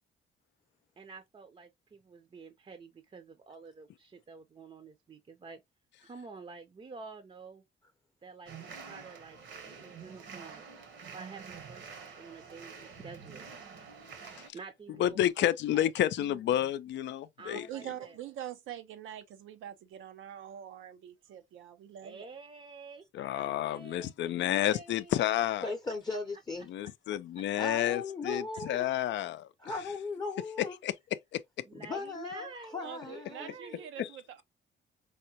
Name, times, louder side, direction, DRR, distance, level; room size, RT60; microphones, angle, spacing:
voice 1, 1.0-5.6 6.0-7.6 8.2-9.4 9.7-10.7 11.1-13.5 14.5-16.1 17.4-18.2 22.0-25.5 26.8-27.2 29.7-29.8 31.6-33.9, right 4 dB, 30° right, 0.6 m, -49 dB
sound 1, 8.5-14.5, right 6 dB, 70° right, 1.0 m, -47 dB
voice 2, 15.0-17.7 23.1-25.7 26.7-29.5 30.6-30.9 31.3-31.4 34.0-34.1, left 12 dB, 65° left, 0.4 m, -30 dB
voice 3, 16.2-16.7 17.5-22.3 32.8-34.4, right 10 dB, 90° right, 0.6 m, -44 dB
voice 4, 25.6-26.7 27.6-28.9 29.6-30.8 31.7-33.5, left 3 dB, 20° left, 0.7 m, -37 dB
4.8 x 2.1 x 2.8 m
cardioid pair, 90°, 20 cm